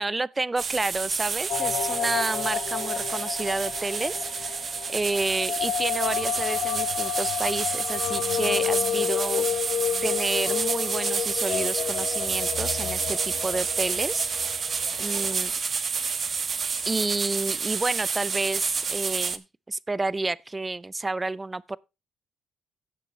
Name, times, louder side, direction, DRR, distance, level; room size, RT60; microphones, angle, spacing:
voice 1, 0.0-4.5 4.9-9.5 10.0-14.3 15.0-15.5 16.9-21.8, right 2 dB, 20° right, 0.5 m, -30 dB
sound 1, 0.6-19.4, right 5 dB, 45° right, 1.0 m, -29 dB
sound 2, 1.5-15.3, left 10 dB, 75° left, 0.7 m, -31 dB
16.0 x 6.8 x 3.2 m
cardioid pair, 90°, 0 cm